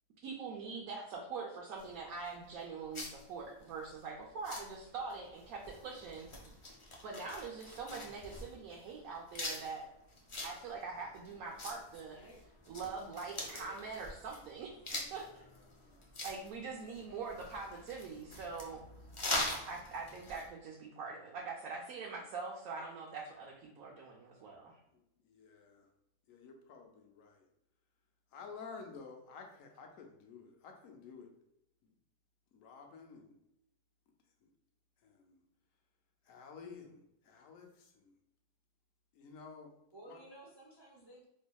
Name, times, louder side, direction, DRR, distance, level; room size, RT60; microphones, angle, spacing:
voice 1, 0.2-6.3 7.0-9.9 10.4-12.2 12.7-14.7 15.1-15.4 16.2-18.8 19.7-24.8, right 4 dB, 85° right, -1 dB, 1.1 m, -43 dB
sound 1, 1.8-20.5, left 1 dB, 45° left, 0.4 m, -44 dB
voice 2, 12.0-12.4 13.4-13.9 39.9-41.2, right 1 dB, 35° right, -4 dB, 0.4 m, -55 dB
voice 3, 15.7-16.0 25.2-25.9 26.3-27.5 28.3-31.3 32.5-33.4 34.4-34.5 35.0-35.4 36.3-38.1 39.2-39.7 40.1-40.2, left 5 dB, 75° left, 3 dB, 1.0 m, -52 dB
4.4 x 2.7 x 2.2 m, 0.82 s
omnidirectional pair, 1.5 m